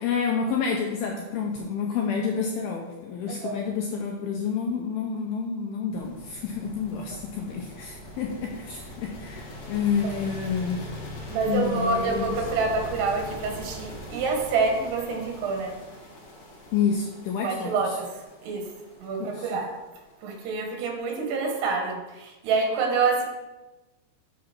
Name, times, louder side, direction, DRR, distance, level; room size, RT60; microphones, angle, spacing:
voice 1, 0.0-10.8 11.4-12.4 16.7-18.0 19.2-19.6, left 6 dB, 90° left, 1 dB, 2.1 m, -29 dB
voice 2, 3.3-3.7 10.0-10.2 11.3-15.8 17.4-18.1 18.4-18.7 19.0-19.7 20.2-23.2, right 4 dB, 70° right, 2 dB, 3.2 m, -27 dB
sound 1, 5.9-21.1, left 1 dB, 65° left, 3.9 m, -41 dB
7.8 x 6.8 x 4.3 m, 1.1 s
omnidirectional pair, 5.1 m